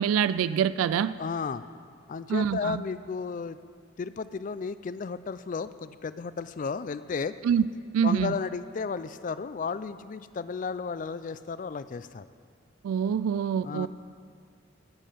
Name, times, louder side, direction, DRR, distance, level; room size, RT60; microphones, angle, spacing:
voice 1, 0.0-1.1 2.3-2.8 7.4-7.7 7.9-8.3 12.8-13.9, right 8 dB, 90° right, 16 dB, 0.3 m, -25 dB
voice 2, 1.2-1.6 2.1-3.6 4.0-7.4 8.0-12.2 13.6-13.9, left 5 dB, 40° left, 14 dB, 0.3 m, -33 dB
17.0 x 7.5 x 5.2 m, 2.2 s
head